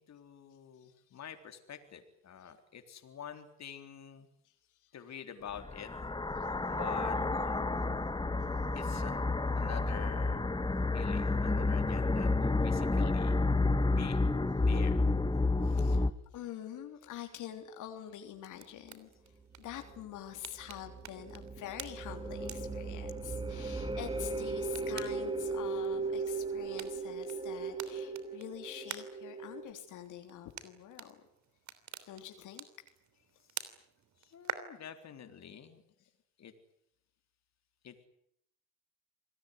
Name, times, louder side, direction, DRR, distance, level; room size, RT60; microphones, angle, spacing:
voice 1, 0.0-4.3 4.9-5.9 6.7-7.5 8.7-9.2 9.6-10.5 10.9-13.4 13.9-14.2 14.6-15.0 24.1-24.2 33.5-33.6 34.2-35.8 36.4-36.5 37.8-38.1, left 8 dB, 60° left, 7 dB, 3.9 m, -47 dB
voice 2, 0.8-1.2 4.4-4.5 4.8-4.9 6.4-6.5 15.6-31.2 32.1-32.7, left 11 dB, 90° left, 5 dB, 3.5 m, -46 dB
sound 1, 5.6-16.1, left 3 dB, 15° left, 1.5 m, -30 dB
sound 2, 18.4-34.6, right 9 dB, 70° right, 3.2 m, -49 dB
sound 3, 19.4-29.7, right 3 dB, 15° right, 3.7 m, -38 dB
27.0 x 19.0 x 9.6 m, 0.73 s
cardioid pair, 90°, 30 cm